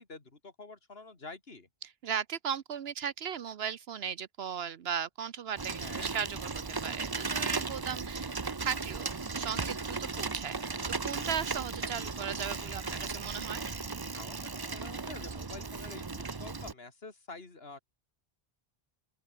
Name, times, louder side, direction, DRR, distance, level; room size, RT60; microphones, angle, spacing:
voice 1, 0.0-1.7 5.8-6.1 14.1-17.8, left 3 dB, 70° left, 2.9 m, -48 dB
voice 2, 1.8-9.1 9.4-10.8 11.0-13.6, right 8 dB, 75° right, 1.0 m, -37 dB
Bicycle, 5.6-16.7, right 4 dB, 25° right, 0.7 m, -36 dB
open air
omnidirectional pair, 1.1 m